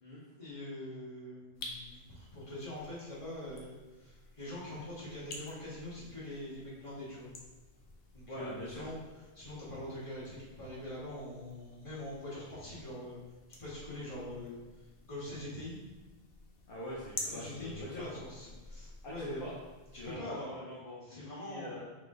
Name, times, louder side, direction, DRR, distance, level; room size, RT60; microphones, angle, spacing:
voice 1, 0.4-7.3 8.1-8.9 9.3-13.2 13.6-15.8 17.3-19.4 20.0-20.5 21.0-21.8, left 1 dB, 30° left, -8 dB, 1.6 m, -44 dB
sound 1, 1.5-20.2, left 2 dB, 80° left, 1.0 m, -51 dB
voice 2, 8.3-8.8 16.7-18.0 19.0-19.5 20.0-21.8, left 1 dB, 55° left, -6 dB, 0.9 m, -43 dB
3.5 x 3.3 x 3.7 m, 1.2 s
omnidirectional pair, 1.1 m